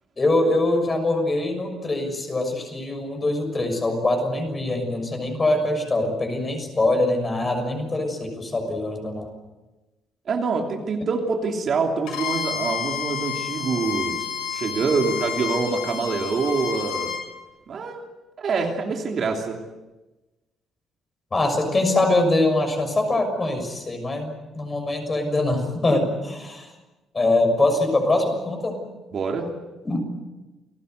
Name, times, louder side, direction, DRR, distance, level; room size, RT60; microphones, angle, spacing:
voice 1, 0.2-9.3 21.3-26.7 27.1-28.8 29.8-30.0, left 2 dB, 20° left, 5 dB, 6.6 m, -23 dB
voice 2, 10.3-14.3 14.5-17.1 17.7-18.0 18.4-19.6 29.1-29.5, right 4 dB, 40° right, 2 dB, 3.0 m, -25 dB
Bowed string instrument, 12.1-17.2, left 8 dB, 85° left, 7.4 m, -30 dB
29.5 x 19.5 x 8.1 m, 1.1 s
cardioid pair, 155°, 0 cm